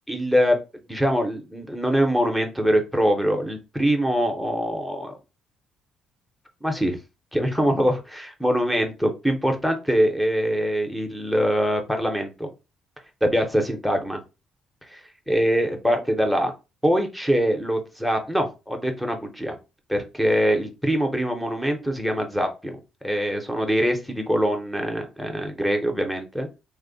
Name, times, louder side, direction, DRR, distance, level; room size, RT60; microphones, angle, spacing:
voice 1, 0.1-0.6 0.9-5.2 6.6-7.0 7.3-12.5 13.2-14.2 14.9-15.0 15.3-16.5 16.8-19.6 19.9-22.8 23.0-26.5, equal, ahead, 4 dB, 0.5 m, -23 dB
3.3 x 2.0 x 3.7 m, 0.28 s
cardioid pair, 175°, 0 cm